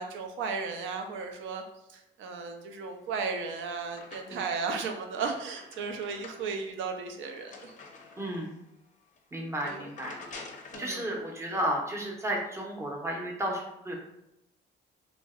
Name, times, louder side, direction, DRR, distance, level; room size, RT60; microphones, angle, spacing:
voice 1, 0.0-1.6 1.9-7.7 9.6-9.9 10.7-11.1, right 5 dB, 80° right, 4 dB, 0.4 m, -35 dB
sound 1, 3.0-4.6 5.0-8.6 9.0-9.2 9.5-11.0, left 3 dB, 40° left, 0.4 m, -48 dB
voice 2, 8.2-8.5 9.3-10.2 10.8-13.9, right 1 dB, 15° right, -1 dB, 0.6 m, -33 dB
2.6 x 2.0 x 2.3 m, 0.86 s
cardioid pair, 90°, 20 cm